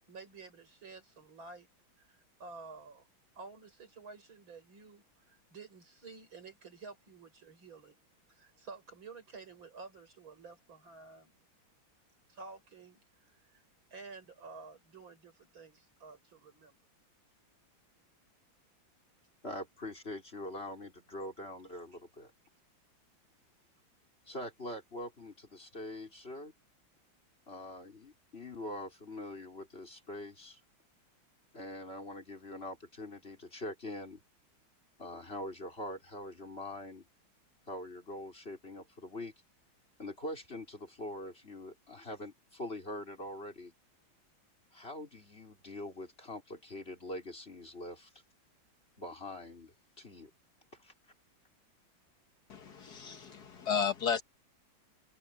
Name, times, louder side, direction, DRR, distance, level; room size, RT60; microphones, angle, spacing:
voice 1, 0.1-1.7 2.0-3.1 3.3-8.0 8.3-11.3 12.3-13.6 13.9-16.8, right 4 dB, 90° right, 6.9 m, -51 dB
voice 2, 19.4-22.3 24.3-26.5 27.5-30.6 31.5-34.2 35.0-37.0 37.7-39.3 40.0-43.7 44.7-48.1 49.0-50.3 50.8-50.9, left 1 dB, 30° left, 4.5 m, -43 dB
voice 3, 52.5-54.2, left 6 dB, 55° left, 1.7 m, -33 dB
omnidirectional pair, 2.1 m